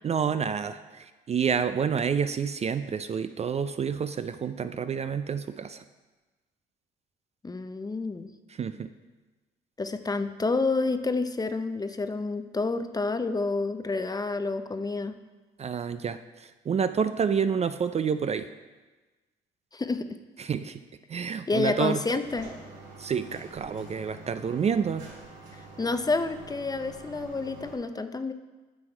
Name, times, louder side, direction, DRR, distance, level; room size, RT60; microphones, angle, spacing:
voice 1, 0.0-5.8 8.5-8.9 15.6-18.5 20.4-20.8 21.1-22.0 23.0-25.1, right 6 dB, 35° right, 11 dB, 0.4 m, -29 dB
voice 2, 7.4-8.3 9.8-15.1 19.7-20.1 21.5-22.5 25.8-28.3, left 3 dB, 20° left, 10 dB, 0.6 m, -29 dB
sound 1, 22.2-27.7, right 2 dB, 70° right, 2.7 m, -46 dB
9.6 x 6.2 x 4.5 m, 1.3 s
supercardioid pair, 70°, 19 cm